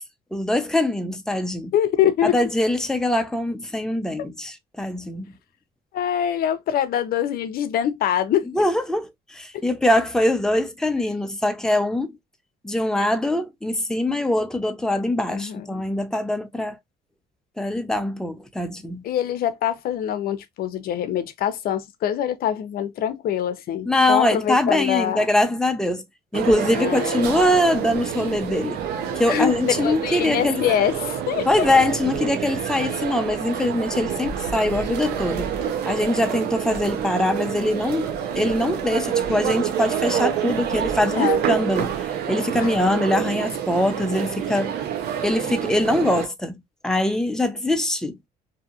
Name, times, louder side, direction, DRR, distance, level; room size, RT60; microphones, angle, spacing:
voice 1, 0.3-1.7 2.2-5.3 8.5-12.2 12.6-16.8 17.6-19.0 23.9-26.0 26.3-28.8 29.1-30.7 31.5-35.5 35.8-44.7 45.2-48.2, left 1 dB, 5° left, 0.5 m, -23 dB
voice 2, 1.7-2.4 5.9-8.5 15.3-15.8 19.0-25.3 26.8-27.3 29.3-29.5 29.8-31.5 38.6-38.7 41.1-41.4 42.6-42.7, left 10 dB, 60° left, 0.6 m, -24 dB
sound 1, 26.3-46.3, right 9 dB, 70° right, 0.7 m, -27 dB
2.7 x 2.4 x 2.7 m
cardioid pair, 110°, 17 cm